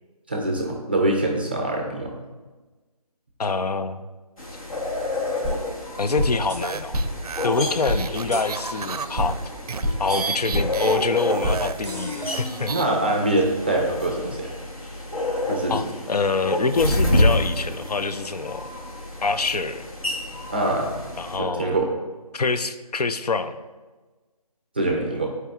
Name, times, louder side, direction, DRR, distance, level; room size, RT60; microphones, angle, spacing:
voice 1, 0.3-2.1 12.7-14.5 15.5-15.8 20.5-20.9 21.4-21.9 24.8-25.3, right 1 dB, 15° right, 0 dB, 0.5 m, -24 dB
voice 2, 3.4-4.0 6.0-7.0 7.4-9.4 10.0-12.7 14.2-14.4 15.7-18.7 19.2-19.9 21.2-21.8 22.3-23.6, left 4 dB, 85° left, 10 dB, 0.5 m, -25 dB
sound 1, 4.4-21.4, left 1 dB, 65° left, 1.6 m, -29 dB
sound 2, 5.4-5.5 6.2-6.6 6.9-7.0 7.9-8.0 8.3-8.4 9.2-9.3 9.8-10.2 10.5-10.6 11.4-11.6 11.8-12.8, equal, 10° left, 0.9 m, -26 dB
sound 3, 6.6-12.9, right 5 dB, 75° right, 0.4 m, -32 dB
10.5 x 4.7 x 2.4 m, 1.3 s
figure-of-eight pair, 165°, 20 cm